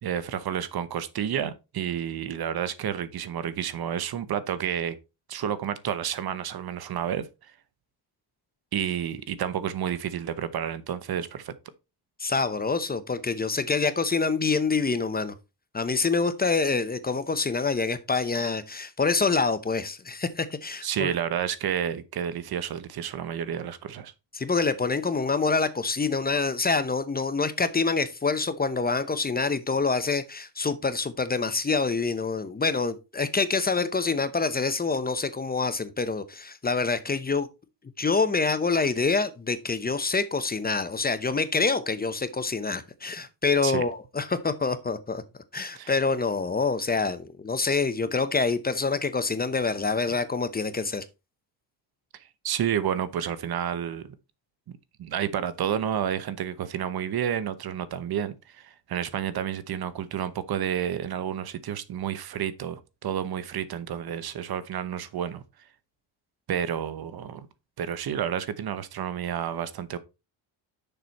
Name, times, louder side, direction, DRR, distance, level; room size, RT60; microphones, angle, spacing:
voice 1, 0.0-5.0 5.3-7.5 8.7-11.5 20.8-24.1 43.6-43.8 45.8-45.9 52.4-54.1 54.7-65.4 66.5-67.5 67.8-70.0, right 9 dB, 55° right, 0.9 m, -30 dB
voice 2, 12.2-15.3 15.7-21.1 24.3-37.5 38.0-45.2 45.5-51.0, left 4 dB, 20° left, 0.8 m, -26 dB
6.8 x 6.1 x 4.1 m
cardioid pair, 100°, 43 cm